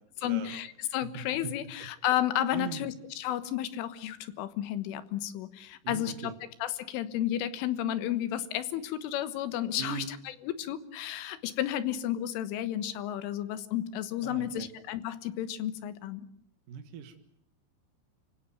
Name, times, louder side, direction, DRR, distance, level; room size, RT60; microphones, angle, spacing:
voice 1, 0.2-6.3 6.6-16.2, left 12 dB, 80° left, 13 dB, 3.8 m, -32 dB
voice 2, 1.1-1.9 2.5-2.9 5.8-6.3 9.8-10.1 14.2-14.7 16.7-17.2, right 8 dB, 60° right, 7 dB, 2.5 m, -40 dB
30.0 x 17.0 x 9.3 m, 0.71 s
omnidirectional pair, 5.6 m